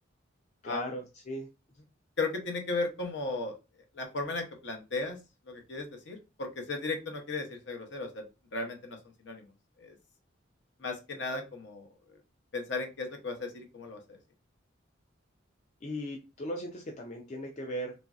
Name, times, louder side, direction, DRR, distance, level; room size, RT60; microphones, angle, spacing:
voice 1, 0.6-1.5 15.8-17.9, equal, 35° left, 2 dB, 0.4 m, -38 dB
voice 2, 2.2-3.5 3.9-5.2 5.5-8.2 8.5-9.0 9.2-9.5 9.8-10.0 10.8-11.9 12.5-14.2, left 3 dB, 60° left, 3 dB, 0.7 m, -35 dB
3.0 x 2.5 x 2.3 m, 0.28 s
head